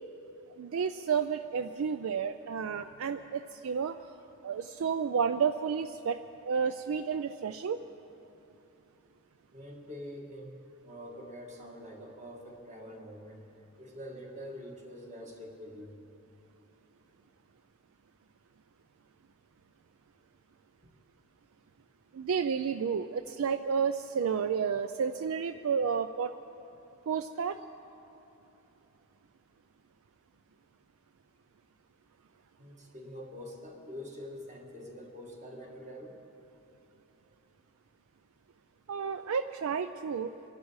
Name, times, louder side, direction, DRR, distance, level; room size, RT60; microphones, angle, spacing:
voice 1, 0.6-4.0 4.4-6.2 6.5-7.8 22.1-26.3 27.1-27.6 38.9-40.3, right 6 dB, 65° right, 10 dB, 0.4 m, -31 dB
voice 2, 9.5-13.4 13.8-16.0 32.6-36.2, equal, 30° right, 0 dB, 2.0 m, -45 dB
25.5 x 12.0 x 4.7 m, 3.0 s
head